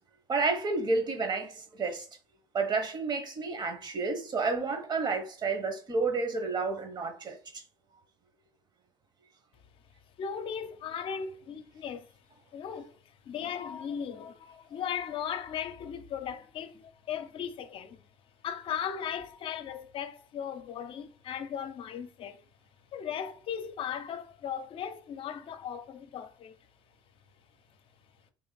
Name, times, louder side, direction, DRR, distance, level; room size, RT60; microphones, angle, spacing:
voice 1, 0.3-2.1 2.5-7.6, right 3 dB, 40° right, 1.2 m, -30 dB
voice 2, 10.2-12.1 12.5-13.0 13.2-18.0 18.4-22.4 22.9-26.6, left 8 dB, 50° left, 0.6 m, -37 dB
3.6 x 3.1 x 4.1 m
hypercardioid pair, 65°, 11 cm